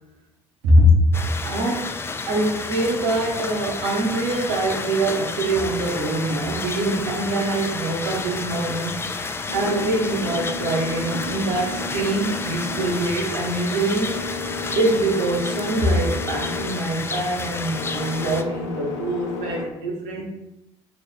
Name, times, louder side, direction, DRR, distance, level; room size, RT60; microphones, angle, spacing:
voice 1, 0.6-1.1 1.4-2.0 2.3-14.2 14.7-20.3, right 1 dB, 65° right, -1 dB, 1.1 m, -23 dB
sound 1, 1.1-18.4, left 4 dB, 15° left, 0.3 m, -31 dB
sound 2, 8.9-19.7, left 3 dB, 70° left, 0.7 m, -34 dB
3.3 x 2.9 x 4.3 m, 0.88 s
figure-of-eight pair, 55°, 16 cm